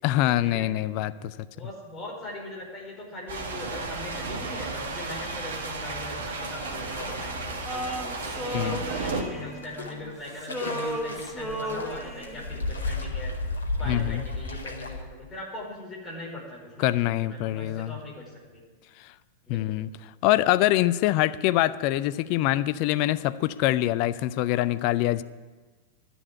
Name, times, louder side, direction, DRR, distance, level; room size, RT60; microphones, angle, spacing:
voice 1, 0.0-1.3 8.5-8.8 13.9-14.2 16.8-18.0 19.0-19.1 19.5-19.9 20.2-25.2, left 15 dB, 45° left, 15 dB, 0.4 m, -24 dB
voice 2, 1.5-13.3 13.8-16.9 17.2-18.6 19.4-19.8, left 1 dB, 20° left, -3 dB, 5.0 m, -40 dB
sound 1, 3.3-9.2, right 3 dB, 60° right, 1.5 m, -33 dB
sound 2, 6.9-15.0, left 2 dB, 70° left, 1.7 m, -35 dB
Male singing, 7.7-10.1 10.4-12.5, right 1 dB, ahead, 1.5 m, -35 dB
12.0 x 7.0 x 9.4 m, 1.3 s
figure-of-eight pair, 90°, 0 cm